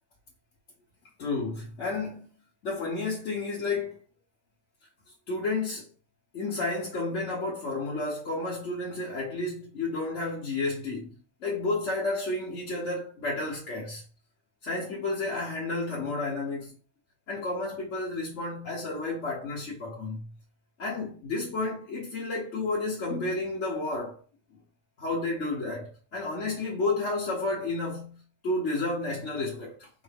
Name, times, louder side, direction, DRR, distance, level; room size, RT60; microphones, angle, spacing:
voice 1, 1.2-2.3 2.6-4.0 5.3-5.9 6.3-14.0 14.6-16.8 17.3-20.3 20.8-24.2 25.0-29.9, left 2 dB, 50° left, 1.1 m, -31 dB
4.6 x 2.6 x 3.4 m
omnidirectional pair, 1.9 m